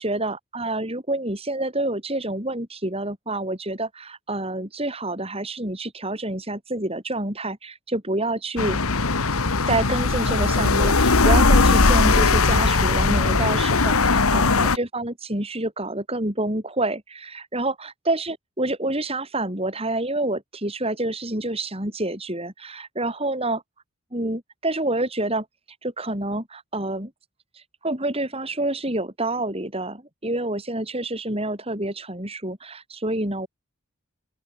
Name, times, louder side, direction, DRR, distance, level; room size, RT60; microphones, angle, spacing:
voice 1, 0.0-8.8 9.7-23.6 24.1-25.4 25.8-27.1 27.8-33.5, right 2 dB, 25° right, 5.1 m, -28 dB
sound 1, 8.6-14.8, left 3 dB, 90° left, 1.6 m, -19 dB
open air
head